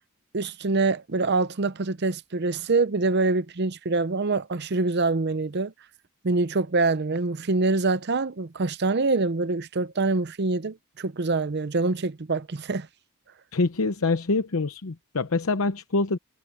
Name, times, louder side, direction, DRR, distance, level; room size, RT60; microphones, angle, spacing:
voice 1, 0.3-5.7 6.2-12.9, right 3 dB, 50° right, 0.7 m, -25 dB
voice 2, 13.5-16.2, left 3 dB, 80° left, 0.8 m, -25 dB
head